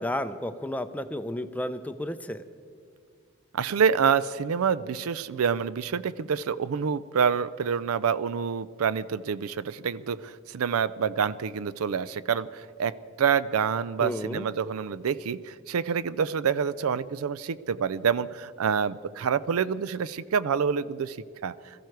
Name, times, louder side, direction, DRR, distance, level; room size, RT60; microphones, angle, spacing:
voice 1, 0.0-2.4 14.0-14.5, left 1 dB, 5° left, 10 dB, 0.4 m, -32 dB
voice 2, 3.5-21.2 21.4-21.5, right 6 dB, 90° right, 17 dB, 0.4 m, -27 dB
21.5 x 14.0 x 4.6 m, 2.1 s
head